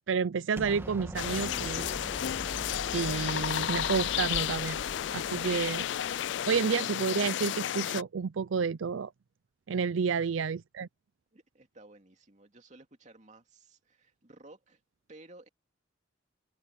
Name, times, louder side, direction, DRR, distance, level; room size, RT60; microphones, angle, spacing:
voice 1, 0.1-1.9 2.9-4.8 5.1-5.9 6.5-9.1 9.7-10.9, right 6 dB, 85° right, 0.5 m, -30 dB
Explosion, 0.6-6.6, equal, 10° right, 1.8 m, -43 dB
sound 1, 1.2-8.0, left 10 dB, 65° left, 0.3 m, -32 dB
voice 2, 11.3-14.8 15.1-15.5, right 2 dB, 40° right, 2.5 m, -55 dB
head